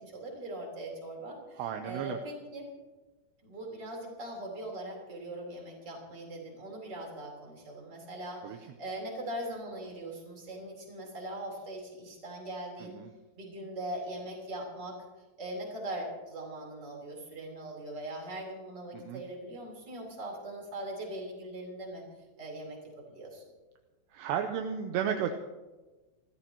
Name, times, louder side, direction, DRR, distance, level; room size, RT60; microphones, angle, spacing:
voice 1, 0.0-2.7 3.4-13.0 13.4-15.0 15.4-22.0 22.4-23.4, right 1 dB, 25° right, -1 dB, 3.8 m, -41 dB
voice 2, 1.6-2.2 8.4-8.6 12.8-13.1 18.9-19.2 24.1-25.3, right 8 dB, 80° right, 6 dB, 2.6 m, -33 dB
26.0 x 14.5 x 3.0 m, 1.2 s
omnidirectional pair, 5.4 m